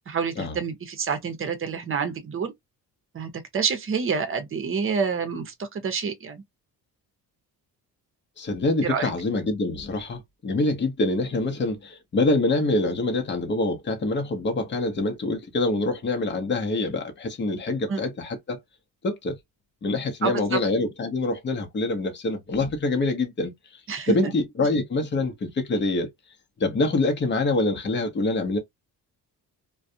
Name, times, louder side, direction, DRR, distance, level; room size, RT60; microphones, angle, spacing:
voice 1, 0.1-2.5 3.1-6.4 8.8-9.1 17.9-18.0 20.2-20.6 23.9-24.3, right 6 dB, 35° right, 0.8 m, -28 dB
voice 2, 8.4-18.6 19.0-19.4 19.8-23.8 24.1-26.1 26.6-28.6, left 2 dB, 30° left, 0.9 m, -25 dB
2.4 x 2.3 x 2.6 m
cardioid pair, 110°, 38 cm